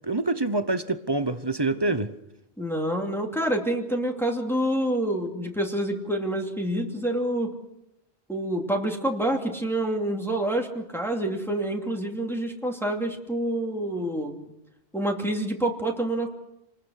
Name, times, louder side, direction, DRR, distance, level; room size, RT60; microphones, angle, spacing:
voice 1, 0.0-2.1, right 2 dB, 25° right, 0.9 m, -26 dB
voice 2, 2.6-7.5 8.3-14.5 14.9-16.3, right 1 dB, ahead, 2.7 m, -27 dB
28.0 x 20.0 x 6.5 m
omnidirectional pair, 1.1 m